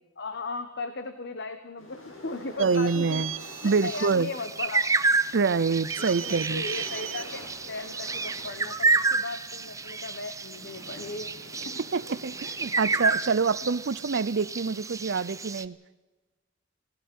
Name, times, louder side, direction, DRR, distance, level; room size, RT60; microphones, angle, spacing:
voice 1, 0.2-3.2 3.6-4.9 6.0-11.3 11.6-11.8, left 3 dB, 55° left, 9 dB, 1.3 m, -37 dB
sound 1, 1.8-4.4 5.0-13.9, left 1 dB, 75° left, 5.0 m, -48 dB
voice 2, 2.6-3.3 3.6-4.3 5.3-6.6 11.9-15.8, right 4 dB, 60° right, 17 dB, 0.6 m, -26 dB
sound 2, 2.6-4.1 5.9-7.2, right 10 dB, 75° right, 1.9 m, -38 dB
sound 3, 3.4-15.6, right 3 dB, 15° right, 0.8 m, -30 dB
27.5 x 18.5 x 5.5 m, 1.2 s
head